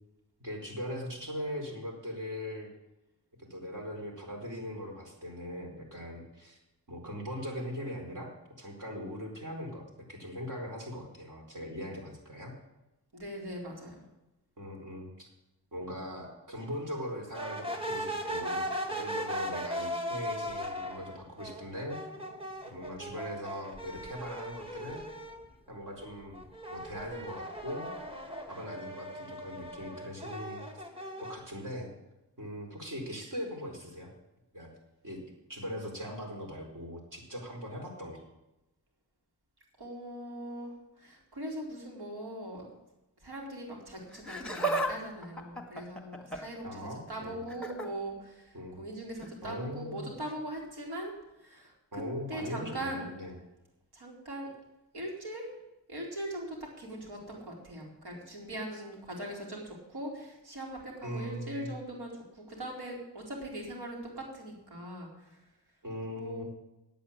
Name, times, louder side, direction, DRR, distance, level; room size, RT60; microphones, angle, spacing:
voice 1, 0.4-2.7 3.4-6.6 6.9-8.3 8.6-12.5 14.6-15.3 15.7-22.0 22.7-25.0 25.7-26.4 26.7-27.9 28.5-30.8 31.2-31.9 32.4-34.1 34.5-34.7 35.0-35.2 35.5-38.2 46.6-47.5 48.5-48.8 49.4-50.1 51.9-53.3 58.7-58.8 61.0-61.8 65.8-66.4, equal, 50° right, 1 dB, 4.3 m, -40 dB
voice 2, 13.1-14.0 39.8-42.7 43.2-51.1 51.4-52.0 52.3-53.1 53.9-54.5 54.9-55.6 55.9-65.4 66.1-66.4, right 1 dB, 70° right, -1 dB, 4.2 m, -41 dB
sound 1, 17.3-25.5 25.9-31.4, equal, 15° right, 2.0 m, -38 dB
Laughter, 44.1-44.9 45.2-46.6 47.5-47.9 49.2-49.4 50.3-50.4, right 2 dB, ahead, 1.8 m, -33 dB
9.3 x 8.7 x 8.6 m, 0.96 s
cardioid pair, 60°, 40 cm